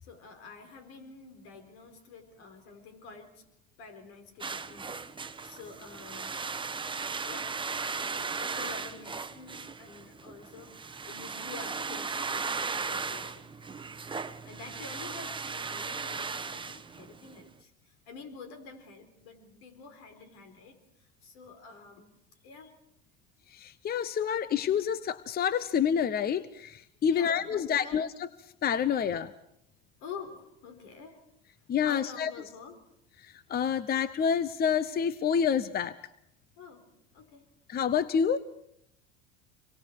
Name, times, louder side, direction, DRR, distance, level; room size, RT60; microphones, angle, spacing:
voice 1, 0.0-3.4 3.8-6.7 7.3-10.7 11.0-13.8 14.4-22.1 22.4-22.8 27.1-28.1 30.0-31.2 31.8-32.9 36.6-37.5, left 5 dB, 75° left, 6 dB, 4.2 m, -48 dB
sound 1, 4.4-17.4, right 5 dB, 15° right, 1.0 m, -37 dB
voice 2, 23.5-28.1 28.6-29.3 31.7-32.3 33.5-35.9 37.7-38.4, left 7 dB, 30° left, 16 dB, 0.8 m, -28 dB
26.5 x 23.5 x 4.7 m, 0.76 s
hypercardioid pair, 85°, 30 cm